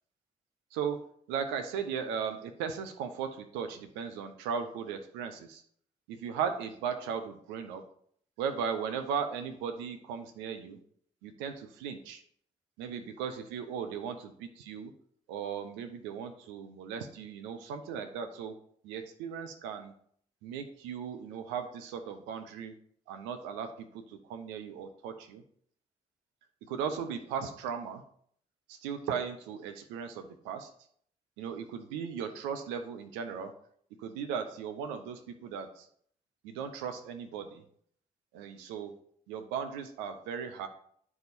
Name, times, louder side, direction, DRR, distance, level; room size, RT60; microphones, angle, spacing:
voice 1, 0.7-1.0 1.3-3.3 3.5-5.6 6.1-7.8 8.4-10.8 11.2-12.2 12.8-14.9 15.3-18.5 18.8-19.9 20.4-22.7 23.1-25.4 26.7-28.0 28.7-30.7 31.4-33.5 34.0-35.9 36.4-37.6 38.3-38.9 39.3-40.7, right 7 dB, 80° right, 7 dB, 0.8 m, -37 dB
9.5 x 5.0 x 4.1 m, 0.63 s
hypercardioid pair, 40°, 19 cm